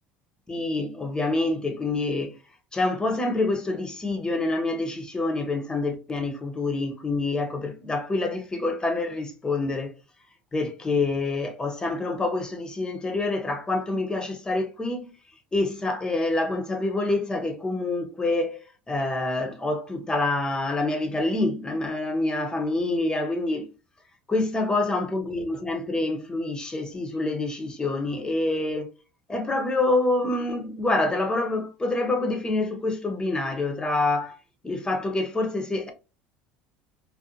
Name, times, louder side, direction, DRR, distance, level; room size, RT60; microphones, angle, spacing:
voice 1, 0.5-2.3 2.7-9.9 10.5-15.1 15.5-18.6 18.9-23.6 24.3-28.9 29.3-34.4 34.6-35.9, left 2 dB, 20° left, 0.7 m, -26 dB
2.4 x 2.1 x 2.8 m
supercardioid pair, 95°, 4 cm